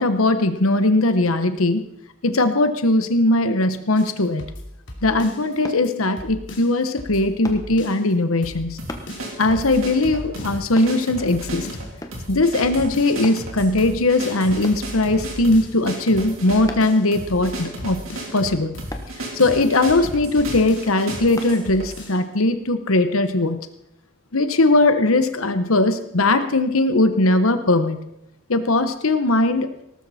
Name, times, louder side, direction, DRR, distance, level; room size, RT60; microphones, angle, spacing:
voice 1, 0.0-1.9 2.2-4.4 5.0-8.8 9.4-11.7 12.3-18.0 18.3-18.8 19.3-23.6 24.3-28.0 28.5-29.7, left 2 dB, 90° left, 10 dB, 1.2 m, -19 dB
sound 1, 4.0-5.6 5.8-5.9 6.2-8.1 8.4-8.8 9.1-10.7 11.0-11.1 11.3-13.3 13.6-13.9 14.2-15.9 16.2-16.3 16.5-18.5 18.7-19.1 19.4-21.0 21.3-21.4 21.6-22.2, left 1 dB, 60° left, 3.0 m, -38 dB
sound 2, 5.6-5.9 7.4-7.7 8.9-9.1 10.8-11.0 12.0-12.3 13.2-13.5 14.6-14.9 16.7-17.0 18.9-19.1 21.4-21.6 22.1-22.3, left 1 dB, 15° left, 1.2 m, -35 dB
sound 3, 8.8-22.1, right 1 dB, 90° right, 3.6 m, -34 dB
18.0 x 13.5 x 4.3 m, 0.80 s
head